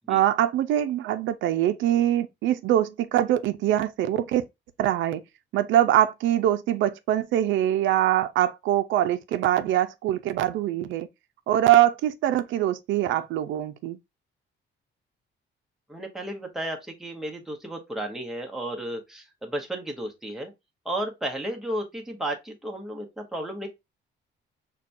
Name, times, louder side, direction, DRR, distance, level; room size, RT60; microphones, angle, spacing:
voice 1, 0.1-4.4 4.8-5.2 5.5-11.1 11.5-14.0, right 12 dB, 85° right, 0.4 m, -23 dB
voice 2, 15.9-20.5 20.8-23.7, right 1 dB, ahead, 0.8 m, -33 dB
5.7 x 2.2 x 2.5 m
cardioid pair, 155°, 19 cm